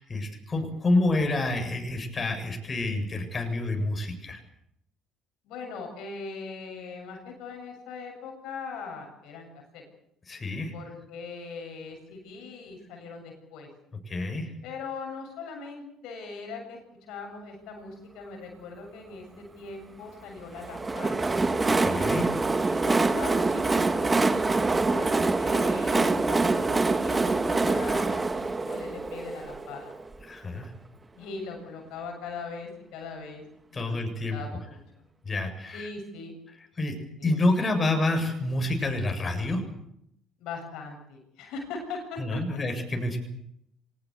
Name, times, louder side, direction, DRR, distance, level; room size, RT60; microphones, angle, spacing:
voice 1, 0.0-4.4 10.3-10.7 14.1-14.5 21.8-22.3 30.3-30.7 33.7-34.4 35.2-35.9 36.8-37.0 37.2-39.6 42.2-43.2, left 2 dB, 35° left, 4 dB, 7.7 m, -28 dB
voice 2, 5.4-9.5 9.7-9.8 10.7-13.7 14.6-21.3 22.6-29.9 31.2-33.4 33.7-34.0 34.3-35.1 35.7-36.3 37.2-37.3 40.4-42.6, left 4 dB, 70° left, 3 dB, 7.4 m, -40 dB
Train, 20.6-30.2, right 3 dB, 25° right, 2.3 m, -25 dB
24.0 x 20.0 x 8.2 m, 0.76 s
hypercardioid pair, 60°, 0 cm